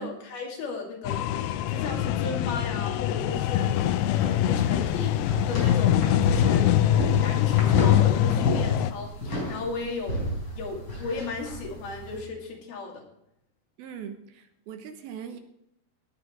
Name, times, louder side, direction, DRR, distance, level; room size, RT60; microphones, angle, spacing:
voice 1, 0.0-3.7 4.1-5.2 5.5-13.1, left 4 dB, 70° left, 0 dB, 4.5 m, -35 dB
sound 1, 1.1-8.9, left 12 dB, 85° left, 2.8 m, -23 dB
sound 2, 3.3-12.2, equal, 25° left, 4.9 m, -33 dB
voice 2, 13.8-15.4, right 7 dB, 75° right, 8 dB, 2.7 m, -40 dB
17.5 x 8.7 x 4.7 m, 0.80 s
omnidirectional pair, 4.7 m